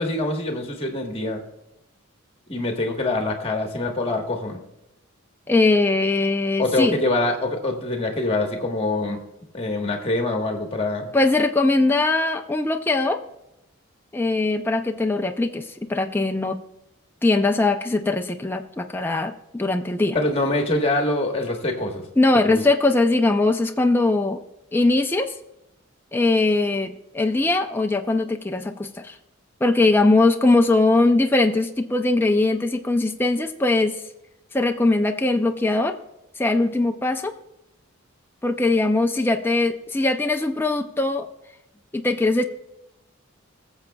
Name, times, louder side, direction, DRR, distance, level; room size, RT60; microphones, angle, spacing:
voice 1, 0.0-1.4 2.5-4.6 6.6-9.2 9.5-11.1 20.1-22.1 22.5-22.6, left 2 dB, 25° left, 3 dB, 1.3 m, -24 dB
voice 2, 5.5-7.0 11.1-13.2 14.1-16.6 17.2-20.2 22.2-24.4 24.7-25.4 26.1-29.1 29.6-34.0 34.5-36.0 36.4-37.3 38.4-41.3 41.9-42.4, left 2 dB, 10° left, 5 dB, 0.4 m, -21 dB
21.0 x 7.2 x 2.3 m, 0.90 s
head